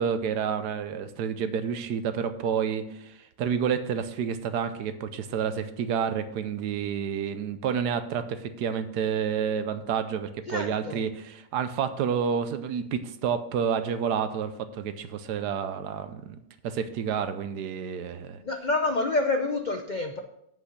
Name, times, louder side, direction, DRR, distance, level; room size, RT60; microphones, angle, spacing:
voice 1, 0.0-18.4, right 7 dB, 75° right, 11 dB, 1.3 m, -29 dB
voice 2, 10.5-11.0 18.4-20.2, left 2 dB, 75° left, 5 dB, 0.4 m, -27 dB
8.3 x 5.6 x 6.5 m, 0.78 s
omnidirectional pair, 1.8 m